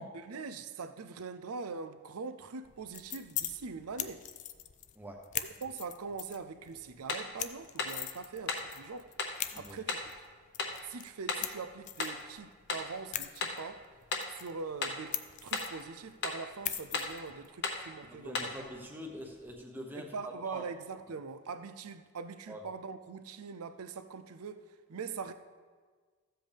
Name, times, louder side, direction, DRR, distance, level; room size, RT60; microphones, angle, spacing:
voice 1, 0.0-4.2 5.3-9.1 9.5-10.0 10.8-13.9 14.3-18.5 19.9-25.3, right 5 dB, 75° right, 0.5 m, -42 dB
sound 1, 2.6-19.5, left 11 dB, 35° left, 0.3 m, -44 dB
sound 2, 7.1-7.3 7.8-8.0 8.5-8.7 9.2-9.4 9.9-10.1 10.6-10.8 11.3-11.5 12.0-12.2 12.7-12.9 13.4-13.6 14.1-14.3 14.8-15.0 15.5-15.8 16.2-16.4 16.9-17.2 17.6-17.9 18.3-18.6, left 4 dB, 50° left, 0.9 m, -35 dB
voice 2, 18.0-20.6 22.5-22.6, equal, 10° right, 1.0 m, -45 dB
14.5 x 7.7 x 3.5 m
head